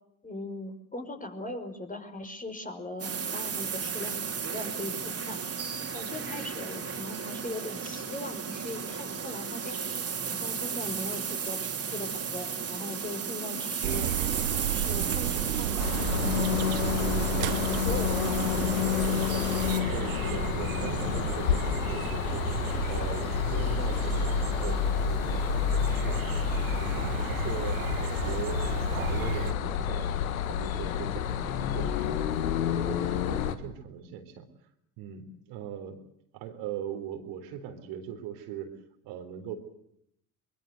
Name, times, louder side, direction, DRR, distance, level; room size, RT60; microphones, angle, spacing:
voice 1, 0.2-5.4 5.9-9.9 10.3-14.1 14.7-15.9 16.2-16.6 17.3-19.1 20.0-20.5, left 2 dB, 20° left, 6 dB, 5.4 m, -39 dB
sound 1, 3.0-19.8, right 6 dB, 35° right, 4.3 m, -34 dB
sound 2, 13.8-29.5, right 12 dB, 85° right, 1.2 m, -33 dB
sound 3, 15.8-33.5, left 9 dB, 85° left, 1.7 m, -29 dB
voice 2, 19.9-22.5 22.9-26.3 26.8-30.1 30.4-32.4 32.8-34.5 35.0-36.0 36.3-38.7 39.0-39.6, right 9 dB, 65° right, 5 dB, 4.0 m, -40 dB
24.0 x 22.0 x 7.9 m, 0.73 s
hypercardioid pair, 65°, 40 cm